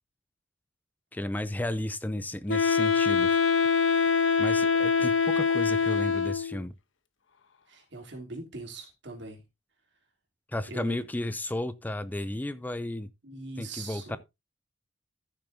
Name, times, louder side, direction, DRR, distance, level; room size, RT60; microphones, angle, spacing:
voice 1, 1.1-3.4 4.4-6.7 10.5-13.1 13.6-14.2, left 1 dB, 10° left, 0.4 m, -33 dB
Wind instrument woodwind instrument, 2.5-6.6, left 6 dB, 85° left, 1.0 m, -24 dB
voice 2, 7.7-9.4 10.7-11.0 13.2-14.2, right 3 dB, 65° right, 3.3 m, -41 dB
14.0 x 6.9 x 2.7 m
head